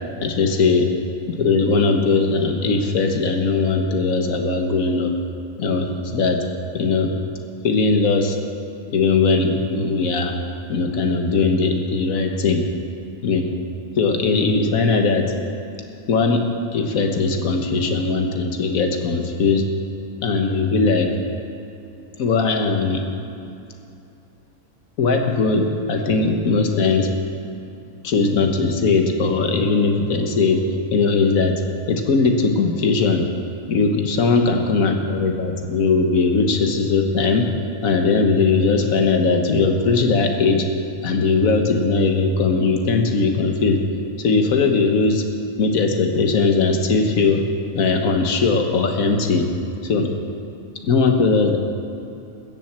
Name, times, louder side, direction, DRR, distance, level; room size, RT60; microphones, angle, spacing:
voice 1, 0.2-0.9 1.3-5.1 5.6-6.4 6.7-7.1 7.6-8.4 8.9-10.4 10.7-12.6 13.2-13.5 14.0-15.3 16.1-16.4 16.7-19.6 20.2-21.1 22.2-23.1 25.0-27.1 28.0-30.6 30.9-31.6 31.9-33.2 33.7-37.5 37.8-40.6 41.0-43.8 44.2-45.2 45.6-47.4 47.7-49.5 49.8-50.1 50.8-51.6, left 4 dB, 85° left, 4 dB, 1.6 m, -19 dB
15.5 x 7.5 x 7.4 m, 2.8 s
omnidirectional pair, 1.4 m